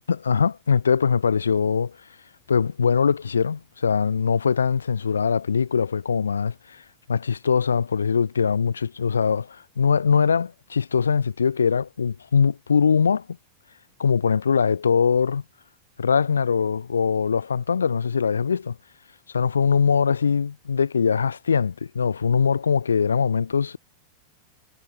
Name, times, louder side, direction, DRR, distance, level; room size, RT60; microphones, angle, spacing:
voice 1, 0.1-2.0 2.5-6.8 7.1-13.3 14.0-15.4 16.0-18.7 19.3-23.8, left 6 dB, 70° left, 5.1 m, -22 dB
figure-of-eight pair, 90°, 0 cm